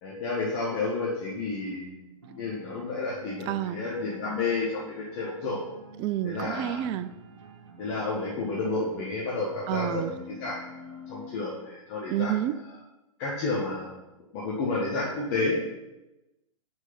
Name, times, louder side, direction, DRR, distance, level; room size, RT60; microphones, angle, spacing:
voice 1, 0.0-5.6 6.2-6.8 7.8-12.3 13.2-13.9 14.3-15.7, left 3 dB, 40° left, -4 dB, 1.5 m, -31 dB
sound 1, 2.2-11.4, left 1 dB, 60° right, 1.2 m, -48 dB
voice 2, 3.5-3.8 6.0-7.1 9.7-10.1 12.1-12.5, right 12 dB, 25° right, 14 dB, 0.4 m, -29 dB
6.0 x 5.3 x 5.7 m, 0.97 s
figure-of-eight pair, 105°, 18 cm